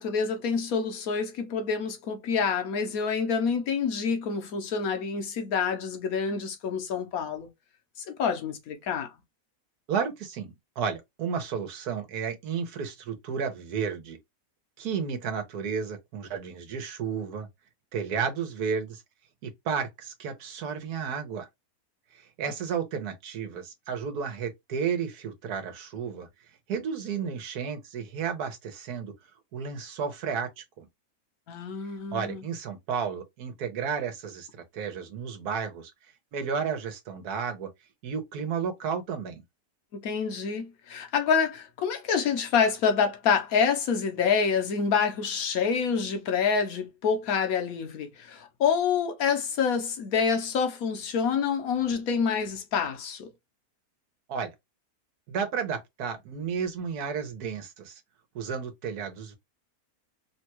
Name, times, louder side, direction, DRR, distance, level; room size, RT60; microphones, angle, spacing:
voice 1, 0.0-7.5 8.1-9.1 31.5-32.4 40.0-53.3, left 6 dB, 70° left, 1.2 m, -27 dB
voice 2, 9.9-14.2 14.8-17.5 17.9-19.0 19.4-21.5 22.1-26.3 26.7-29.1 29.5-30.9 32.1-35.9 36.3-37.7 38.0-39.4 54.3-54.5 55.3-58.0 58.3-59.4, right 6 dB, 90° right, 1.4 m, -32 dB
3.4 x 2.2 x 2.9 m
omnidirectional pair, 1.6 m